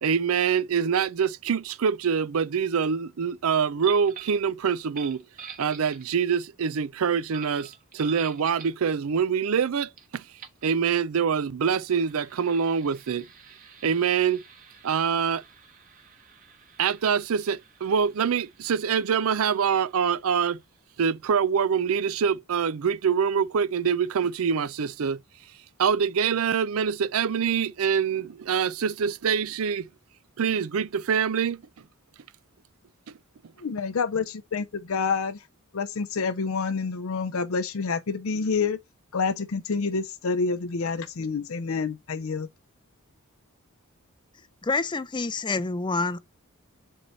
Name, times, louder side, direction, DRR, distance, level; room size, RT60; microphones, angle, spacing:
voice 1, 0.0-5.2 5.6-10.2 10.6-13.2 13.8-14.4 14.8-15.4 16.8-20.6 21.0-25.2 25.8-29.9 30.4-31.6, right 7 dB, 70° right, 0.4 m, -25 dB
sound 1, 3.8-4.5 4.9-6.4 7.3-8.8 10.0-10.1 10.4-10.6 11.7-21.0, right 10 dB, 35° right, 1.3 m, -46 dB
voice 2, 33.6-35.5 35.7-38.8 39.1-42.5, left 5 dB, 65° left, 0.5 m, -28 dB
voice 3, 44.6-46.2, left 3 dB, 20° left, 0.5 m, -27 dB
7.6 x 4.5 x 4.0 m
head